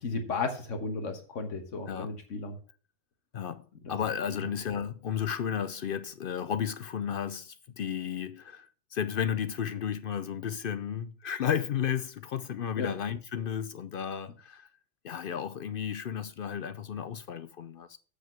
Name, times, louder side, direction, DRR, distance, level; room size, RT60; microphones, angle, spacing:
voice 1, 0.0-2.6 3.8-3.9 12.8-12.9, left 4 dB, 85° left, 1.7 m, -34 dB
voice 2, 3.3-14.7 15.0-18.0, left 8 dB, 60° left, 0.6 m, -33 dB
8.0 x 5.0 x 7.4 m
omnidirectional pair, 1.3 m